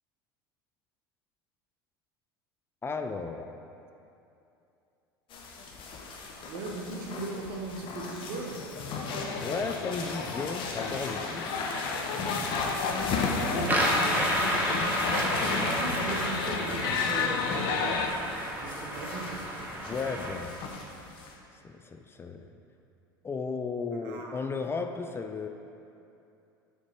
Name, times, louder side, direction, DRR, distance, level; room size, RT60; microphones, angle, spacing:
voice 1, 2.8-3.6 9.4-12.3 19.9-20.6 21.5-22.5 23.2-25.5, left 4 dB, 20° left, 6 dB, 0.3 m, -35 dB
sound 1, 5.3-21.3, left 3 dB, 45° left, 0.9 m, -36 dB
voice 2, 6.4-8.6 12.4-13.1 13.4-18.1 18.6-19.5 24.0-24.5, right 3 dB, 65° right, 1 dB, 1.0 m, -39 dB
sound 2, 9.1-18.1, left 5 dB, 65° left, 0.6 m, -33 dB
sound 3, 13.6-20.3, right 1 dB, 15° right, 1.0 m, -31 dB
6.7 x 4.4 x 4.4 m, 2.7 s
hypercardioid pair, 80°, 12 cm